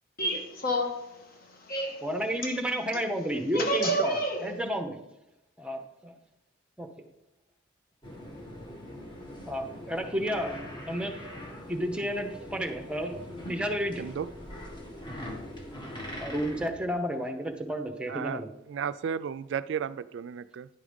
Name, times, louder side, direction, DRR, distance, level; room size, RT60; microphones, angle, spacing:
voice 1, 0.2-1.2 1.5-2.1 2.9-3.0 3.5-4.6, right 1 dB, 50° left, 1.3 m, -29 dB
voice 2, 2.0-5.0 5.6-6.1 6.8-6.9 9.5-11.2 11.7-13.2 13.5-14.1 16.2-18.5, equal, 5° right, 0.8 m, -31 dB
sound 1, 8.0-16.7, left 1 dB, 25° left, 1.5 m, -42 dB
voice 3, 18.1-18.4 18.7-20.7, right 7 dB, 65° right, 0.3 m, -33 dB
10.0 x 4.9 x 5.1 m
head